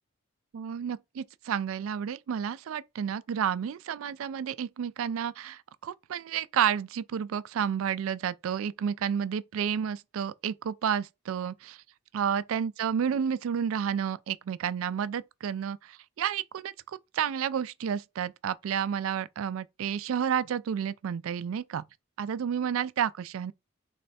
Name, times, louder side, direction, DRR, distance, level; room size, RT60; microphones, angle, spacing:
voice 1, 0.5-11.8 12.1-16.7 17.1-21.8 22.2-23.5, right 8 dB, 85° right, 0.3 m, -31 dB
3.3 x 3.1 x 4.1 m
head